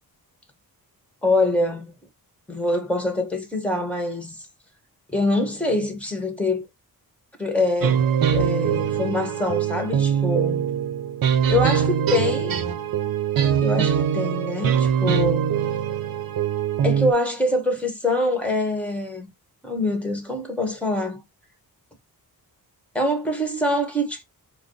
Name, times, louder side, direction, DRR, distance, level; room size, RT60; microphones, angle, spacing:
voice 1, 1.2-1.9 2.5-4.4 5.1-6.6 7.4-8.0 8.3-10.7 11.5-12.6 13.6-15.5 16.8-19.3 19.6-21.2 22.9-24.2, left 1 dB, 5° left, 1.5 m, -24 dB
sound 1, 7.8-17.1, right 8 dB, 70° right, 0.7 m, -22 dB
4.8 x 2.2 x 3.9 m
wide cardioid pair, 125°, 36 cm